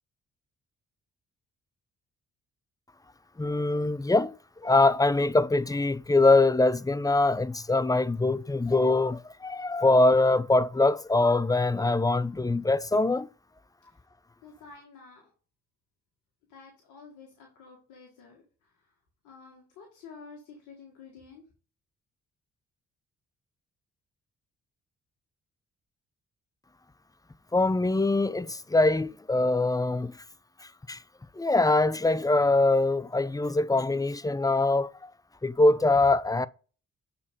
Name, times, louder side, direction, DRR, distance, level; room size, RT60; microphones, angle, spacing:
voice 1, 3.4-4.4 4.6-13.3 27.5-30.1 30.9-31.0 31.4-35.1 35.4-36.5, left 2 dB, 10° left, 0.6 m, -23 dB
voice 2, 14.4-15.3 16.5-18.9 19.2-21.5, left 4 dB, 75° left, 1.8 m, -50 dB
7.0 x 4.3 x 5.2 m
hypercardioid pair, 45°, 31 cm